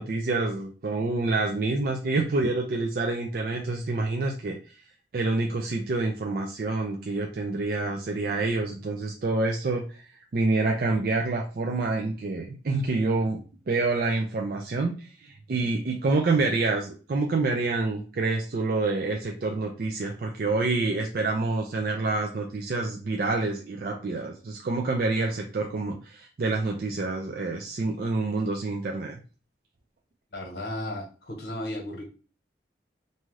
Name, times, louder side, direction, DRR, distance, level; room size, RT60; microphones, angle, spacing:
voice 1, 0.0-4.6 5.1-10.0 10.3-13.4 13.7-29.2, right 3 dB, 55° right, 1 dB, 0.4 m, -27 dB
voice 2, 30.3-32.0, left 1 dB, 60° left, 1 dB, 1.0 m, -34 dB
2.7 x 2.3 x 3.1 m, 0.35 s
head